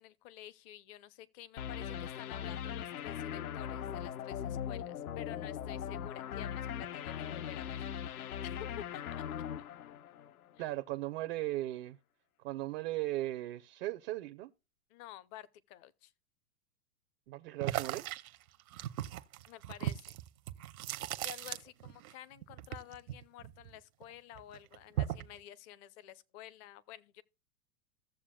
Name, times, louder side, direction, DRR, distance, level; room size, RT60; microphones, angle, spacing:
voice 1, 0.0-8.2 8.4-9.3 10.6-10.7 14.9-16.1 19.5-20.2 21.2-27.2, left 12 dB, 35° left, 0.7 m, -51 dB
sound 1, 1.6-10.6, left 9 dB, 70° left, 0.8 m, -40 dB
voice 2, 10.6-12.0 12.4-14.5 17.3-18.1, right 16 dB, 40° right, 0.6 m, -37 dB
sound 2, 17.6-22.1 22.4-24.0 24.4-25.4, right 13 dB, 65° right, 0.9 m, -38 dB
15.5 x 7.1 x 2.2 m
hypercardioid pair, 115°, 46 cm